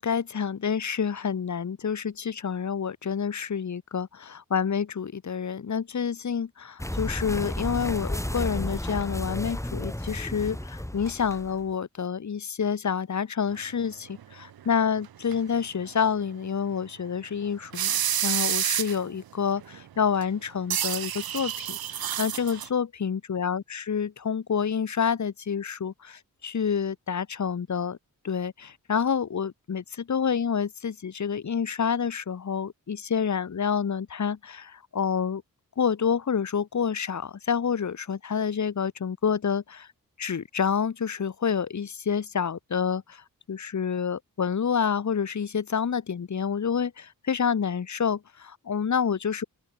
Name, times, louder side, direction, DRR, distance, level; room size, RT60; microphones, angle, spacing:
voice 1, 0.0-21.8 22.2-28.0 28.2-35.4 35.8-39.9 40.2-43.2 43.5-49.4, left 7 dB, 50° left, 1.3 m, -28 dB
sound 1, 6.8-11.7, left 1 dB, 10° left, 4.6 m, -32 dB
sound 2, 13.9-15.0 15.3-15.4 15.8-15.9 16.4-16.5 17.2-17.5 17.7-19.1 19.6-19.8 20.2-20.3 20.7-22.7, right 10 dB, 75° right, 0.9 m, -29 dB
open air
cardioid pair, 60°, 36 cm